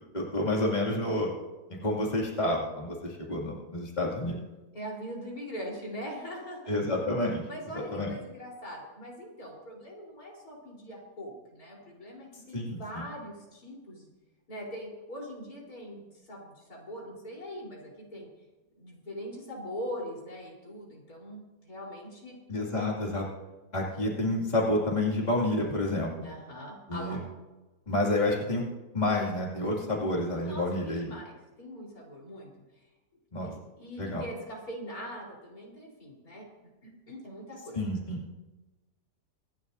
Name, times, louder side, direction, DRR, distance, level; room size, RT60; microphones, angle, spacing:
voice 1, 0.1-1.3 1.7-4.3 6.7-7.4 7.7-8.1 12.5-13.1 22.5-23.2 23.7-26.3 26.9-27.2 27.9-28.6 28.9-31.1 33.3-33.5 34.0-34.2 37.7-38.2, left 1 dB, 30° left, -3 dB, 2.7 m, -29 dB
voice 2, 4.7-6.8 7.4-14.1 14.5-18.3 18.7-22.4 26.2-27.2 30.4-32.5 33.4-36.4 36.8-37.8, equal, 80° left, -3 dB, 4.7 m, -42 dB
26.0 x 11.0 x 2.7 m, 1.1 s
omnidirectional pair, 1.6 m